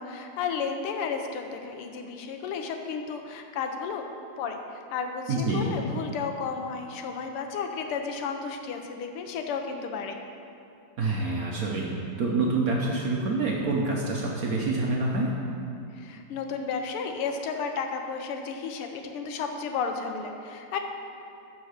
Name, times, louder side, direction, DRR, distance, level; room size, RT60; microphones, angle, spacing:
voice 1, 0.0-4.0 4.4-10.2 15.9-20.8, left 5 dB, 85° left, 5 dB, 1.7 m, -33 dB
voice 2, 5.3-5.8 11.0-11.9 12.2-15.3, right 3 dB, 60° right, -2 dB, 1.0 m, -27 dB
10.5 x 4.6 x 6.4 m, 2.6 s
omnidirectional pair, 2.4 m